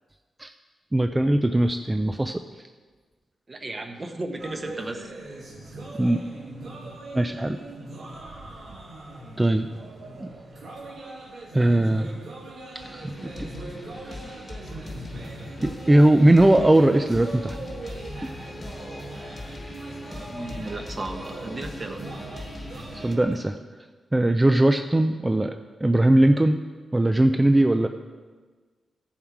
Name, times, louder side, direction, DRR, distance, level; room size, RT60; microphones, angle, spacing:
voice 1, 0.9-2.4 5.9-6.2 7.1-7.6 9.4-9.7 10.2-10.3 11.5-12.1 12.9-13.1 13.4-13.5 15.6-17.6 18.2-18.3 20.1-20.2 23.0-23.6 24.1-25.5 25.8-26.6 26.9-27.9, right 1 dB, 10° right, 7 dB, 0.4 m, -20 dB
voice 2, 3.5-5.1 20.3-22.1, right 2 dB, 25° right, 5 dB, 1.0 m, -34 dB
sound 1, 4.4-23.4, right 2 dB, 65° right, 2.1 m, -41 dB
sound 2, 12.8-23.2, left 1 dB, 20° left, 1.3 m, -40 dB
16.0 x 7.3 x 4.7 m, 1.4 s
wide cardioid pair, 170°, 0 cm